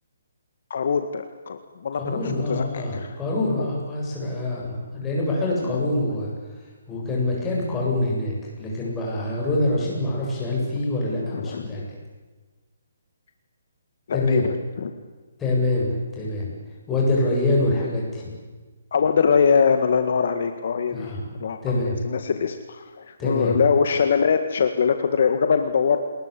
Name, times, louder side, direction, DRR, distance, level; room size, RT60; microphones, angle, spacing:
voice 1, 0.7-3.1 3.6-3.7 11.3-11.9 14.1-14.9 18.9-21.1 21.4-26.0, left 6 dB, 55° left, 8 dB, 1.9 m, -23 dB
voice 2, 1.9-6.3 6.9-11.8 14.1-14.4 15.4-16.5 16.9-18.3 20.9-22.0 23.2-23.6, left 2 dB, 10° left, -4 dB, 8.0 m, -25 dB
28.5 x 20.5 x 8.5 m, 1.3 s
hypercardioid pair, 165°, 0 cm